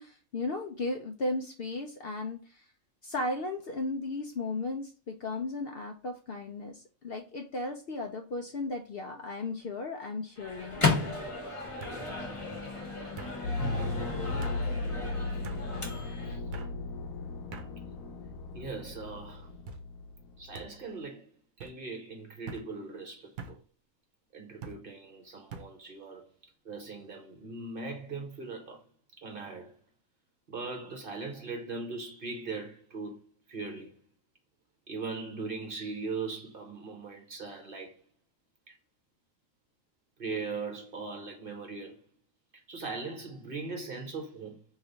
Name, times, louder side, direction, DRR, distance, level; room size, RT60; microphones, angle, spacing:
voice 1, 0.0-2.7 3.0-11.0, left 2 dB, 55° left, 0.7 m, -35 dB
sound 1, 8.3-8.7 9.1-9.7 10.7-10.8 11.8-12.0 13.2-13.4 14.4-14.6 15.4-15.6 16.5-16.7 17.5-17.7 18.4-18.9 19.7-19.8 20.5-20.7 21.6-21.8 22.5-22.7 23.4-23.6 24.6-24.8 25.5-25.7, right 5 dB, 90° right, 1.2 m, -44 dB
Microwave oven, 10.4-16.4, left 3 dB, 25° left, 1.0 m, -34 dB
sound 2, 13.4-20.8, left 2 dB, 90° left, 1.1 m, -36 dB
voice 2, 18.5-19.5 20.4-21.3 21.6-23.6 24.3-28.9 29.2-29.8 30.5-34.0 34.9-38.0 38.7-38.8 40.2-42.1 42.5-44.6, right 4 dB, 45° right, 1.0 m, -40 dB
3.2 x 2.9 x 3.8 m
omnidirectional pair, 1.4 m